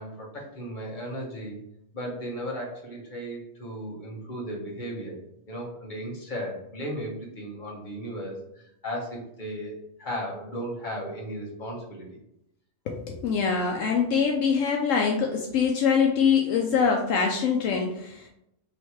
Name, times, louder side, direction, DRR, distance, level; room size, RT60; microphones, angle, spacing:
voice 1, 0.0-1.6 1.9-5.1 5.5-9.7 10.0-12.1, equal, 35° left, -3 dB, 1.3 m, -35 dB
voice 2, 12.9-18.3, left 6 dB, 75° left, 1 dB, 0.9 m, -24 dB
3.3 x 3.1 x 4.2 m, 0.80 s
omnidirectional pair, 1.4 m